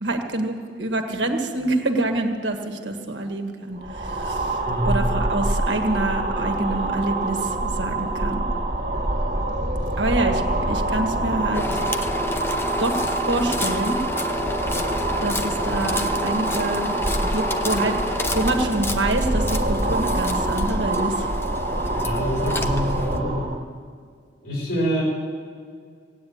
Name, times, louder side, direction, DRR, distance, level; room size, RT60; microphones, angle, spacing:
voice 1, 0.0-4.6 4.8-8.4 10.0-10.4 10.7-11.8 12.8-14.0 15.2-16.9 17.2-21.3, right 2 dB, 90° right, 4 dB, 1.6 m, -26 dB
sound 1, 3.8-23.6, right 2 dB, 55° right, 1.8 m, -25 dB
voice 2, 4.7-5.1 21.9-23.4 24.4-25.0, equal, 85° left, -3 dB, 4.0 m, -26 dB
sound 2, 11.5-23.2, left 2 dB, 15° left, 0.6 m, -30 dB
17.0 x 9.4 x 8.7 m, 2.1 s
head